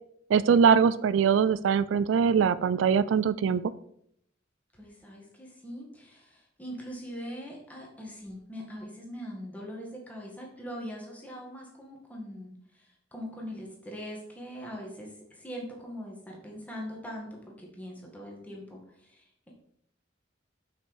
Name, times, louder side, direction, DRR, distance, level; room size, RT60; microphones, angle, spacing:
voice 1, 0.3-3.6, right 6 dB, 85° right, 16 dB, 0.3 m, -22 dB
voice 2, 4.7-19.5, equal, 10° left, -1 dB, 1.7 m, -42 dB
6.0 x 5.4 x 4.7 m, 0.70 s
head